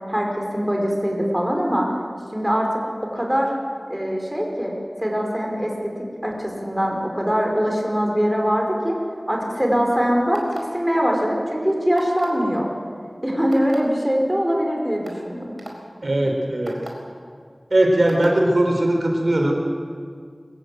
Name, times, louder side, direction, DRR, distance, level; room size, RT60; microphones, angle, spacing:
voice 1, 0.1-1.9 2.3-3.5 3.9-4.7 5.0-5.9 6.2-9.0 9.3-10.4 10.7-12.7 13.2-15.5, equal, 10° right, 0 dB, 5.1 m, -22 dB
sound 1, 10.3-10.8 12.0-12.4 13.5-13.8 14.5-14.6 15.0-15.2 15.6-15.7 16.7-16.9 18.1-18.3, right 2 dB, 50° right, 4.5 m, -37 dB
voice 2, 16.0-16.8 17.7-19.7, right 1 dB, 75° right, 1 dB, 3.7 m, -19 dB
23.0 x 14.5 x 9.2 m, 2.1 s
wide cardioid pair, 55°, 0 cm